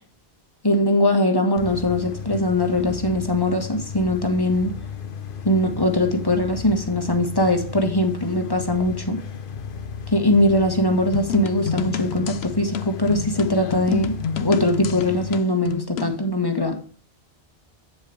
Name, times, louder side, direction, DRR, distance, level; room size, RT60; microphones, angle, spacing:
voice 1, 0.6-4.7 5.4-9.2 10.1-16.8, left 1 dB, 25° left, 5 dB, 1.5 m, -21 dB
sound 1, 1.6-15.4, left 7 dB, 60° left, 1.0 m, -35 dB
sound 2, 11.1-16.2, left 7 dB, 85° left, 1.0 m, -29 dB
8.9 x 7.5 x 3.4 m, 0.40 s
omnidirectional pair, 1.0 m